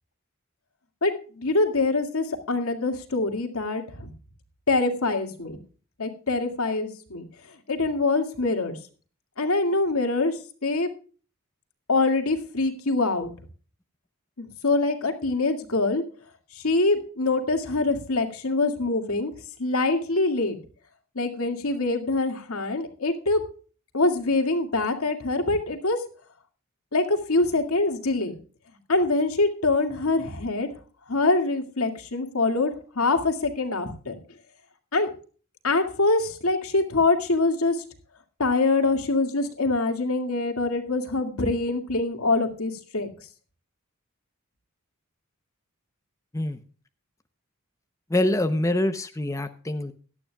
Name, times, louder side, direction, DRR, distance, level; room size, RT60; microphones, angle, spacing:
voice 1, 1.0-4.1 4.7-5.6 6.0-7.2 7.7-8.8 9.4-10.9 11.9-13.3 14.4-16.0 16.6-19.3 19.6-20.6 21.2-23.4 23.9-26.0 26.9-28.3 28.9-30.7 31.1-34.2 34.9-35.1 35.6-37.8 38.4-43.1, left 3 dB, 90° left, 5 dB, 2.3 m, -24 dB
voice 2, 48.1-49.9, left 1 dB, 15° left, 9 dB, 0.7 m, -25 dB
17.0 x 12.0 x 2.3 m, 0.39 s
head